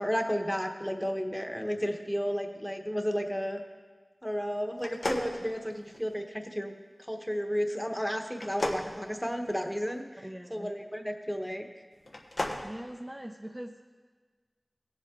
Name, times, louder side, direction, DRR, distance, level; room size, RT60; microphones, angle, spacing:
voice 1, 0.0-3.6 4.2-6.7 7.1-10.1 10.5-11.7, equal, 5° left, 4 dB, 1.1 m, -32 dB
sound 1, 4.8-6.2 8.3-9.9 12.0-12.7, left 1 dB, 70° left, 1.1 m, -35 dB
voice 2, 10.2-10.7 12.6-13.8, equal, 15° right, 2 dB, 0.6 m, -42 dB
18.0 x 7.6 x 3.7 m, 1.4 s
wide cardioid pair, 50°, 0 cm